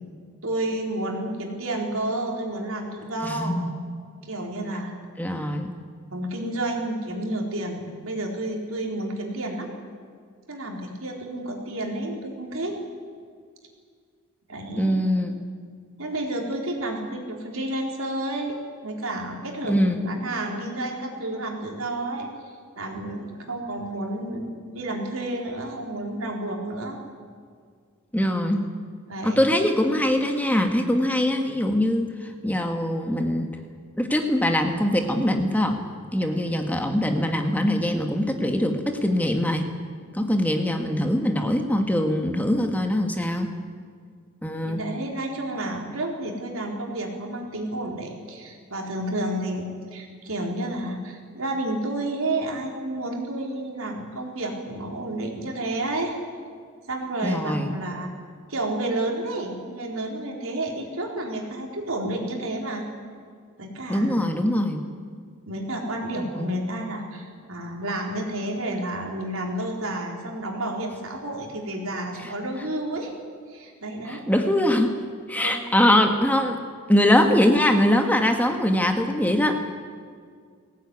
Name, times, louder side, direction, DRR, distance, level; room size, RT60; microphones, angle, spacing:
voice 1, 0.4-3.6 4.2-4.9 6.1-9.7 10.5-12.8 14.5-15.0 16.0-18.6 18.8-22.3 22.8-27.0 29.1-29.5 36.2-36.3 44.6-49.7 49.9-56.1 56.9-58.1 58.5-62.9 63.6-64.2 65.4-73.1 73.5-74.2 75.4-75.5, right 1 dB, 75° right, 1 dB, 4.1 m, -30 dB
voice 2, 3.2-3.7 5.2-5.7 14.8-15.4 19.7-20.0 28.1-28.7 29.2-32.1 32.4-33.5 34.0-35.8 36.1-39.7 40.1-43.5 44.4-44.8 57.2-57.8 63.9-64.8 66.4-66.5 74.1-74.9 75.3-76.6 76.9-79.6, left 1 dB, 10° left, 5 dB, 1.5 m, -22 dB
20.0 x 17.5 x 9.7 m, 2.1 s
head